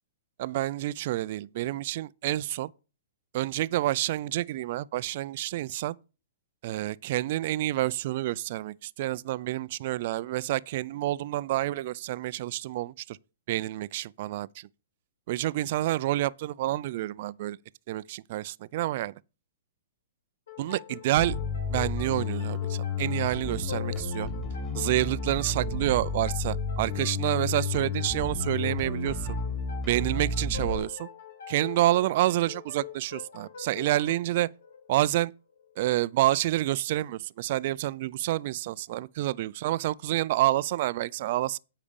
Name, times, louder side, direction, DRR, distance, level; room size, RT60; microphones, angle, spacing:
voice 1, 0.4-2.7 3.3-6.0 6.6-13.2 13.5-14.7 15.3-17.6 17.9-19.1 20.6-21.4 21.7-24.3 24.7-29.4 29.9-31.1 31.5-34.5 34.9-35.3 35.8-41.6, right 15 dB, 50° right, 0.4 m, -28 dB
sound 1, 20.5-35.8, left 8 dB, 75° left, 2.5 m, -44 dB
Bass guitar, 21.2-30.8, left 4 dB, 5° left, 2.4 m, -32 dB
8.6 x 5.0 x 6.9 m
hypercardioid pair, 145°, 0 cm